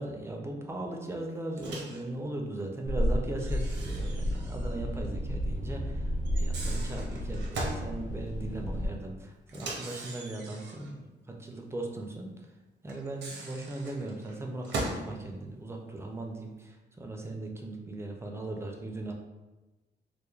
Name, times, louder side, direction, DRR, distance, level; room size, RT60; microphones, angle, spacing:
voice 1, 0.0-6.0 6.4-11.0 11.4-12.3 12.8-14.8 15.0-16.7 17.0-19.1, right 2 dB, 15° right, 1 dB, 0.3 m, -38 dB
Microwave oven, 1.6-2.0 3.4-4.8 5.0-5.1 6.3-7.9 9.5-10.9 12.9-15.1, right 2 dB, 80° right, 0.6 m, -39 dB
sound 1, 2.9-8.9, equal, 50° left, 0.7 m, -32 dB
3.1 x 2.1 x 2.3 m, 1.1 s
wide cardioid pair, 130°, 18 cm